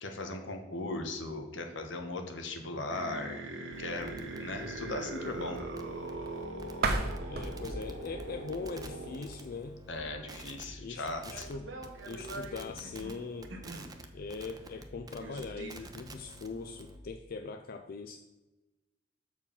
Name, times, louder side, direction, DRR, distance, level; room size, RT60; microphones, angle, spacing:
voice 1, 0.0-3.4 3.8-5.6 9.9-11.5, left 2 dB, 75° left, 5 dB, 1.1 m, -38 dB
sound 1, 2.9-9.4 9.9-10.5 11.2-13.9 14.5-14.6 14.7-14.8 15.2-15.9, right 2 dB, 85° right, 1.2 m, -42 dB
sound 2, 3.7-10.0 10.3-10.6 11.1-11.5 11.8-17.0, right 1 dB, 20° right, 0.6 m, -50 dB
sound 3, 6.7-9.6, right 3 dB, 55° right, 0.9 m, -35 dB
voice 2, 7.3-9.8 10.8-11.7 12.1-13.5 14.1-18.2, left 4 dB, 50° left, 6 dB, 0.4 m, -41 dB
7.0 x 4.7 x 5.6 m, 1.1 s
head